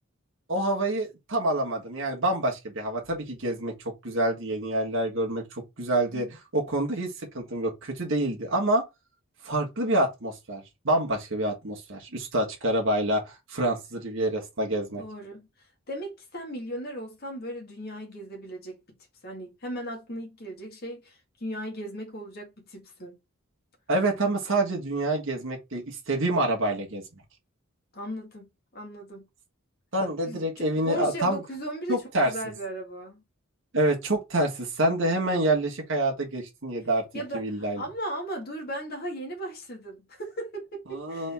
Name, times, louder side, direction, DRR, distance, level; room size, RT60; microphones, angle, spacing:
voice 1, 0.5-3.7 4.0-6.3 6.5-8.8 9.4-15.0 23.9-27.0 29.9-31.4 31.9-32.3 33.7-37.0 37.3-37.8 40.9-41.3, right 1 dB, 60° right, 1.4 m, -27 dB
voice 2, 15.0-15.5 15.9-19.0 19.2-23.1 27.9-28.5 28.7-29.2 30.3-33.2 37.1-41.3, right 1 dB, 45° left, 1.9 m, -37 dB
4.2 x 3.5 x 3.4 m
head